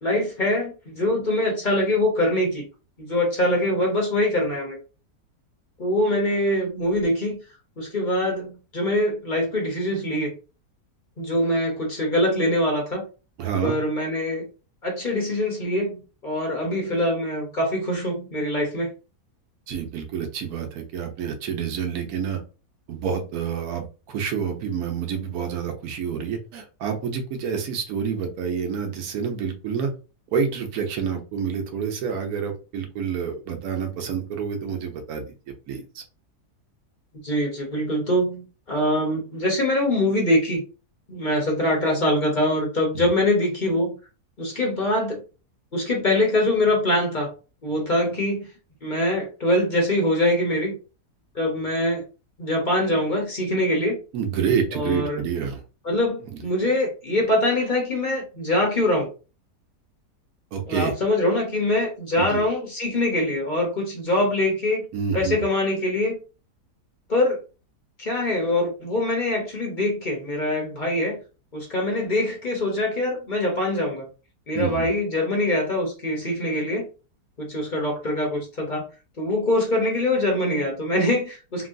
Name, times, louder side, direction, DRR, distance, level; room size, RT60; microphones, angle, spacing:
voice 1, 0.0-2.6 3.0-4.8 5.8-7.4 7.8-10.3 11.2-13.0 13.6-14.5 14.8-18.9 37.2-40.6 41.1-43.9 44.4-45.2 45.7-47.3 47.6-48.4 48.8-50.8 51.3-52.0 52.4-54.0 54.7-55.2 55.8-59.1 60.7-64.8 65.1-66.2 67.1-67.4 68.0-71.2 71.5-74.1 74.5-76.8 77.4-78.9 79.2-81.7, left 1 dB, 40° left, -1 dB, 0.7 m, -23 dB
voice 2, 13.4-13.8 19.7-22.4 22.9-29.9 30.3-35.2 35.7-36.0 42.9-43.0 54.1-55.6 60.5-60.9 62.2-62.5 64.9-65.4 74.5-74.9, right 7 dB, 70° right, 5 dB, 1.1 m, -28 dB
3.0 x 2.7 x 2.6 m, 0.33 s
omnidirectional pair, 1.7 m